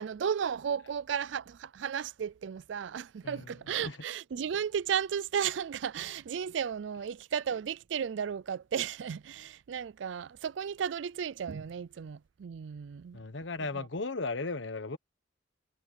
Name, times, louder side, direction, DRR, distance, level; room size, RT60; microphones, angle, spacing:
voice 1, 0.0-13.2, right 8 dB, 80° right, 0.4 m, -34 dB
voice 2, 3.2-4.0 13.1-15.0, left 3 dB, 80° left, 1.2 m, -36 dB
head